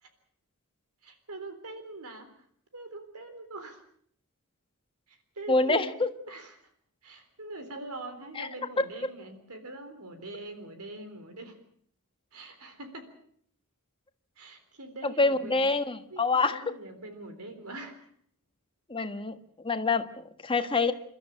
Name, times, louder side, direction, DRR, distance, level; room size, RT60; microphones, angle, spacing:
voice 1, 1.0-2.3 2.7-3.8 5.1-5.9 6.3-6.6 7.0-11.6 12.3-13.1 14.4-15.7 16.1-18.1, right 2 dB, 75° right, 8 dB, 3.7 m, -43 dB
voice 2, 5.5-6.1 8.4-8.5 15.0-16.6 18.9-19.3 19.6-20.9, left 3 dB, 25° left, 8 dB, 1.5 m, -26 dB
29.5 x 13.0 x 8.6 m, 0.64 s
head